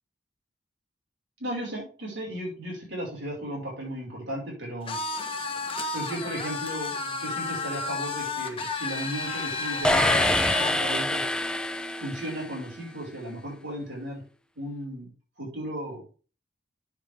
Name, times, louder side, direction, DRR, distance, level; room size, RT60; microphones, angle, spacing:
voice 1, 1.4-5.0 5.9-11.3 12.0-14.2 14.5-15.1 15.4-16.0, right 1 dB, 65° right, -4 dB, 5.1 m, -35 dB
sound 1, 4.9-10.8, left 4 dB, 30° left, 1.3 m, -32 dB
sound 2, 9.8-12.7, left 1 dB, 5° left, 0.5 m, -25 dB
9.8 x 6.8 x 3.5 m, 0.38 s
head